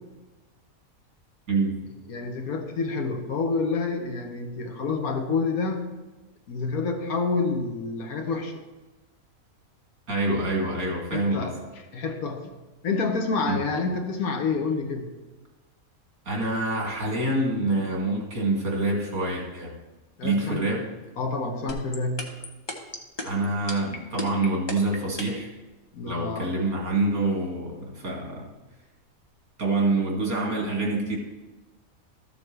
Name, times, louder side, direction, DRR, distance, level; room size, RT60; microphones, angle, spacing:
voice 1, 1.5-1.8 10.1-11.5 13.5-13.6 16.3-19.7 20.2-20.9 23.2-25.5 26.1-28.5 29.6-31.2, right 2 dB, 80° right, -2 dB, 2.6 m, -26 dB
voice 2, 2.1-5.9 6.5-8.6 11.1-12.5 12.8-15.1 20.2-20.7 21.2-22.3 25.9-26.5, left 4 dB, 80° left, 4 dB, 1.5 m, -28 dB
sound 1, 21.7-25.5, left 2 dB, 20° left, 0.9 m, -33 dB
13.5 x 7.0 x 3.3 m, 1.1 s
omnidirectional pair, 1.5 m